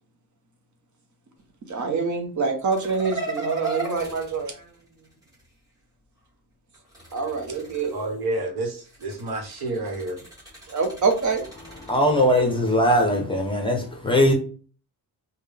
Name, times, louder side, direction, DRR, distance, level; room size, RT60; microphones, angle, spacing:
voice 1, 1.7-4.7 7.1-8.1 10.7-11.4, right 4 dB, 50° right, 0.8 m, -26 dB
sound 1, 2.7-5.5 6.7-8.3 8.8-13.1, right 3 dB, 10° right, 1.7 m, -37 dB
voice 2, 7.9-10.2, right 2 dB, 70° right, 1.1 m, -29 dB
voice 3, 11.8-14.3, equal, 15° left, 0.6 m, -20 dB
3.6 x 2.2 x 3.4 m
wide cardioid pair, 155°, 39 cm